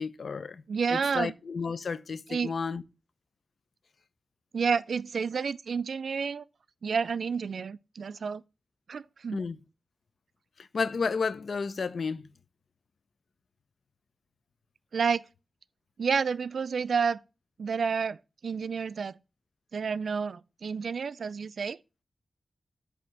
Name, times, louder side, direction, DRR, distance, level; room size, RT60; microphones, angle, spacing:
voice 1, 0.0-0.6 0.9-2.8 9.3-9.6 10.6-12.3, left 5 dB, 75° left, 0.6 m, -32 dB
voice 2, 0.7-1.3 2.3-2.5 4.5-6.4 6.8-8.4 8.9-9.4 14.9-15.2 16.0-17.2 17.6-18.2 18.4-19.1 19.7-21.8, right 6 dB, 80° right, 0.3 m, -30 dB
8.5 x 3.4 x 6.3 m
cardioid pair, 60°, 0 cm